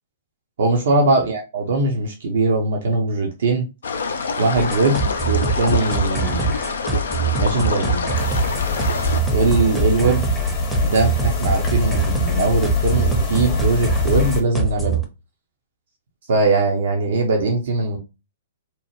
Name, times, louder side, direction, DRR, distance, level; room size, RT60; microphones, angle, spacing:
voice 1, 0.6-3.6 4.4-6.5 7.4-8.1 9.3-10.2 10.8-15.0 16.3-18.0, right 3 dB, 60° right, 2 dB, 0.6 m, -20 dB
sound 1, 3.8-9.2, left 4 dB, 65° left, 0.4 m, -26 dB
sound 2, 4.6-15.0, right 4 dB, 5° right, 0.6 m, -24 dB
sound 3, 8.2-14.4, left 4 dB, 30° left, 0.8 m, -24 dB
2.8 x 2.0 x 2.9 m, 0.28 s
figure-of-eight pair, 115°, 0 cm